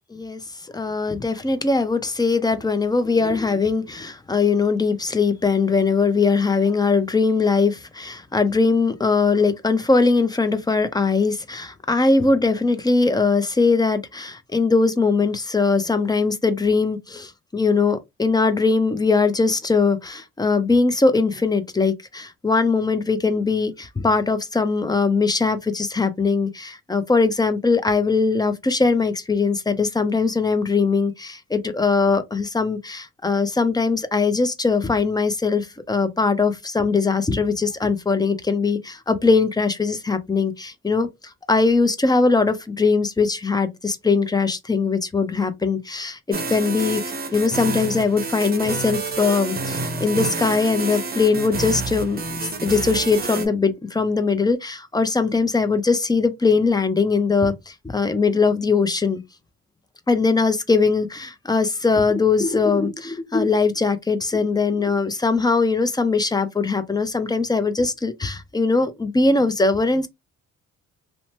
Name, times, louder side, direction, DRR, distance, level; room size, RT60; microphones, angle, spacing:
voice 1, 0.7-41.1 41.5-46.2 46.5-47.0 47.3-59.2 60.1-70.1, left 4 dB, 15° left, 0.5 m, -21 dB
sound 1, 46.3-53.5, right 4 dB, 30° right, 0.7 m, -28 dB
2.9 x 2.1 x 2.8 m
cardioid pair, 90°, 30 cm